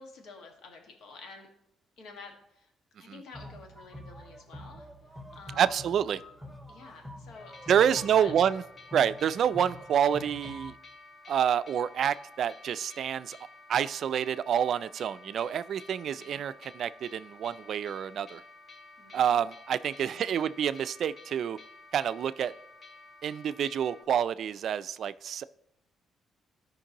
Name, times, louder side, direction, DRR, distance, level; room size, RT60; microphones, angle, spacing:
voice 1, 0.0-1.5 2.0-2.7 3.0-4.9 5.3-5.9 6.7-8.3 16.2-16.4 19.0-19.4 19.9-20.4, left 3 dB, 80° left, 2 dB, 1.7 m, -49 dB
sound 1, 3.3-10.7, left 1 dB, ahead, 1.9 m, -46 dB
voice 2, 5.6-6.2 7.7-8.6 8.9-10.7 11.3-13.4 13.7-18.4 19.1-21.6 21.9-22.5 23.2-25.4, right 9 dB, 65° right, 15 dB, 0.3 m, -28 dB
sound 2, 7.4-24.0, left 3 dB, 40° left, 1.6 m, -52 dB
13.5 x 5.2 x 2.9 m, 0.77 s
cardioid pair, 90°, 0 cm